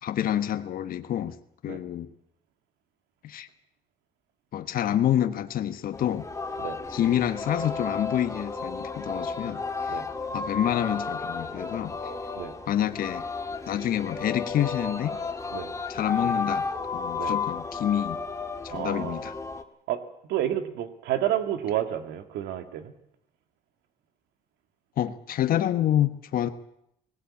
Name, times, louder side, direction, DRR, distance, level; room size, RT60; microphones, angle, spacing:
voice 1, 0.0-1.4 1.6-2.1 3.2-3.5 4.5-6.3 6.9-10.0 10.3-12.1 12.7-13.2 13.7-15.2 15.9-16.6 16.9-18.2 18.6-19.3 25.0-26.5, left 11 dB, 60° left, 9 dB, 1.3 m, -27 dB
Singing, 5.9-19.6, left 4 dB, 20° left, 1.8 m, -33 dB
voice 2, 18.7-19.2 19.9-20.0 20.3-22.9, right 11 dB, 85° right, 8 dB, 2.2 m, -30 dB
20.0 x 17.5 x 8.6 m, 0.76 s
cardioid pair, 110°, 17 cm